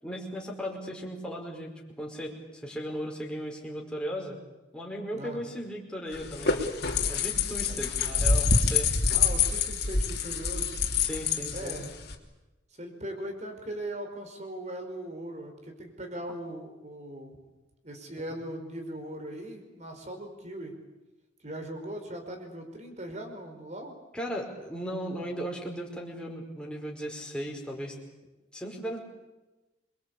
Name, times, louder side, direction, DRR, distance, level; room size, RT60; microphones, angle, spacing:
voice 1, 0.0-1.7 2.0-4.4 4.7-6.5 7.1-8.9 10.9-11.8 24.1-27.9 28.5-29.0, equal, 5° left, -1 dB, 5.1 m, -36 dB
sound 1, 6.1-12.2, left 5 dB, 55° left, 3.3 m, -26 dB
voice 2, 7.7-8.1 9.1-10.8 11.5-11.9 12.8-17.4 17.8-20.8 21.4-23.9, right 1 dB, 35° right, 5 dB, 5.2 m, -39 dB
28.0 x 23.0 x 8.5 m, 1.1 s
head